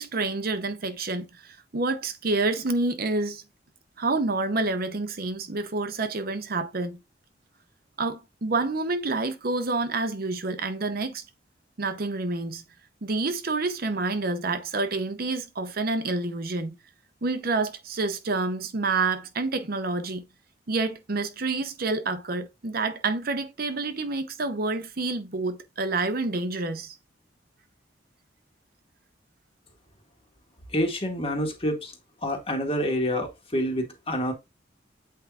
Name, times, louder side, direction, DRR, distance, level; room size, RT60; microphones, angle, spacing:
voice 1, 0.0-3.4 4.0-7.0 8.0-11.2 11.8-12.6 13.0-16.8 17.2-20.2 20.7-27.0, right 3 dB, 55° right, 0.8 m, -28 dB
voice 2, 30.7-31.9 32.2-34.3, equal, 30° left, 1.7 m, -27 dB
8.1 x 4.8 x 2.4 m
head